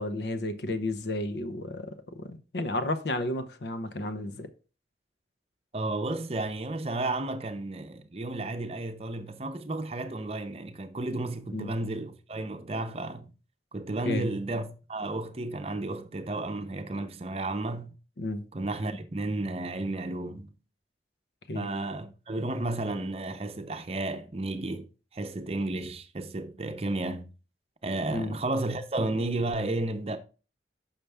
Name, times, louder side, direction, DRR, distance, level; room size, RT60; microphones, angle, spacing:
voice 1, 0.0-4.5 11.5-11.7 14.1-14.3 18.2-18.5 21.5-21.7 28.1-28.4, left 2 dB, 75° left, 0.8 m, -32 dB
voice 2, 5.7-13.3 13.7-17.9 18.5-20.5 21.5-27.3 27.8-30.2, right 2 dB, 35° right, 0.7 m, -32 dB
6.7 x 5.7 x 3.4 m
head